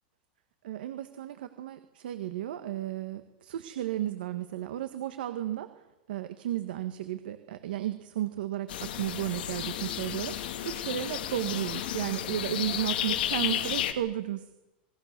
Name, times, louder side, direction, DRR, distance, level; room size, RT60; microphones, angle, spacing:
voice 1, 0.6-5.8 6.1-14.6, right 12 dB, 70° right, 9 dB, 1.7 m, -34 dB
sound 1, 8.7-13.9, left 11 dB, 70° left, 3.0 m, -32 dB
27.5 x 21.0 x 6.9 m, 1.0 s
supercardioid pair, 180°, 5 cm